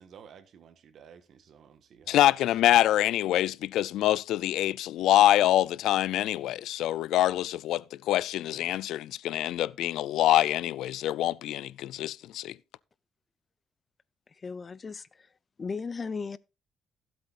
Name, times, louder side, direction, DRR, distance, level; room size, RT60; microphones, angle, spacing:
voice 1, 0.0-2.2, right 7 dB, 65° right, 1.5 m, -53 dB
voice 2, 2.1-12.5, left 13 dB, 85° left, 0.4 m, -25 dB
voice 3, 14.4-15.0 15.6-16.4, left 5 dB, 35° left, 0.7 m, -35 dB
16.5 x 7.9 x 2.5 m
cardioid pair, 90°, 0 cm